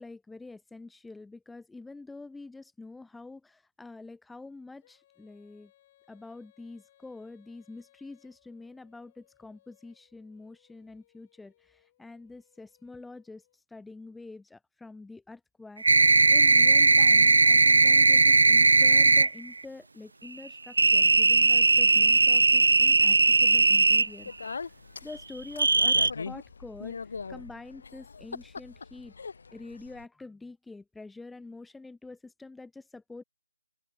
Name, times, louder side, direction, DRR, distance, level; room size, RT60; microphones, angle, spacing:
voice 1, 0.0-5.7 6.1-15.8 16.3-24.3 25.0-27.0 27.3-29.1 29.5-33.2, left 3 dB, ahead, 0.6 m, -46 dB
Female singing, 4.8-13.6, left 13 dB, 20° left, 7.7 m, -67 dB
sound 1, 15.8-19.3 20.8-24.1 25.6-26.1, right 3 dB, 70° right, 0.4 m, -19 dB
Speech, 24.0-30.1, left 5 dB, 45° left, 1.4 m, -41 dB
open air
hypercardioid pair, 175°, 0 cm